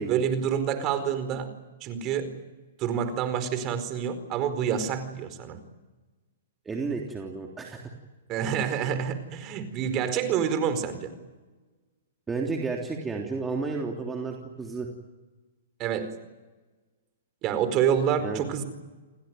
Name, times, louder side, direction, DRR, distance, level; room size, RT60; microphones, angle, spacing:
voice 1, 0.1-1.5 1.8-2.3 2.8-5.6 8.3-11.1 15.8-16.1 17.4-18.6, right 8 dB, 35° right, 10 dB, 4.6 m, -27 dB
voice 2, 6.6-7.8 12.3-14.9 18.2-18.4, right 4 dB, 15° right, 1 dB, 3.2 m, -32 dB
29.0 x 18.5 x 9.4 m, 1.2 s
hypercardioid pair, 125°, 0 cm